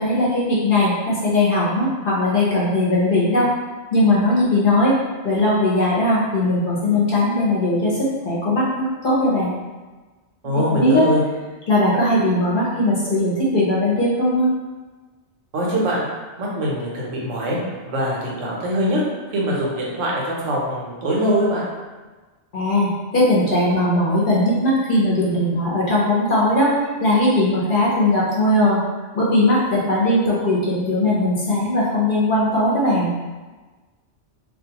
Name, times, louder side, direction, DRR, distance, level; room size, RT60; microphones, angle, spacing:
voice 1, 0.0-3.5 3.9-4.9 5.2-9.5 10.5-11.1 11.7-14.5 22.5-28.8 29.1-33.1, left 1 dB, 50° left, -7 dB, 0.8 m, -19 dB
voice 2, 10.4-11.2 15.5-16.1 16.4-17.6 17.9-19.0 19.3-21.7, equal, 85° right, -4 dB, 1.0 m, -22 dB
2.4 x 2.3 x 2.8 m, 1.3 s
omnidirectional pair, 1.2 m